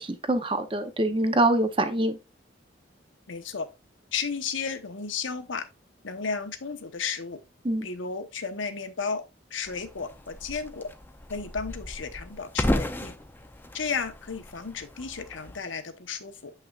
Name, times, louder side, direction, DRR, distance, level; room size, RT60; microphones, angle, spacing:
voice 1, 0.0-2.2 7.6-7.9, right 1 dB, 25° right, 0.7 m, -25 dB
voice 2, 3.3-3.7 4.1-5.7 6.0-7.4 7.8-9.2 9.5-10.9 11.3-13.1 13.7-16.5, left 5 dB, 85° left, 1.0 m, -33 dB
sound 1, 9.6-15.6, left 1 dB, 10° left, 0.5 m, -34 dB
7.7 x 5.6 x 2.4 m
head